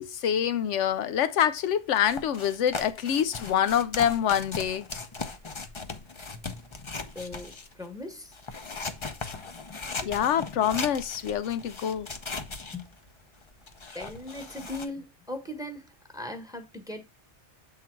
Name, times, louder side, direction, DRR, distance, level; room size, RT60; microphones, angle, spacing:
voice 1, 0.0-4.8 10.0-12.1, left 9 dB, 75° left, 0.9 m, -26 dB
sound 1, 1.9-7.9 8.3-14.9, left 4 dB, 30° left, 0.6 m, -38 dB
voice 2, 7.1-8.3 12.7-12.9 13.9-17.0, left 1 dB, 5° right, 1.1 m, -39 dB
7.4 x 3.8 x 4.5 m
omnidirectional pair, 1.2 m